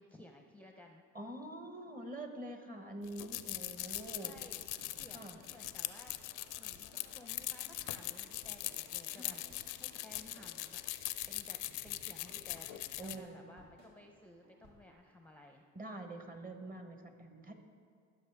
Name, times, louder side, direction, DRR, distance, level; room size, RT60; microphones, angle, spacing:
voice 1, 0.0-1.0 4.1-9.4 9.8-10.8 11.3-11.6 11.8-15.6, left 1 dB, 5° left, 3 dB, 0.6 m, -57 dB
voice 2, 1.1-4.3 5.1-5.4 9.1-9.4 13.0-13.5 15.7-17.5, right 1 dB, 30° right, 5 dB, 1.1 m, -46 dB
sound 1, 3.0-13.2, left 15 dB, 85° left, 0.5 m, -41 dB
sound 2, 3.8-14.9, right 1 dB, 75° right, 1.7 m, -61 dB
15.0 x 6.3 x 3.4 m, 2.2 s
cardioid pair, 90°, 30 cm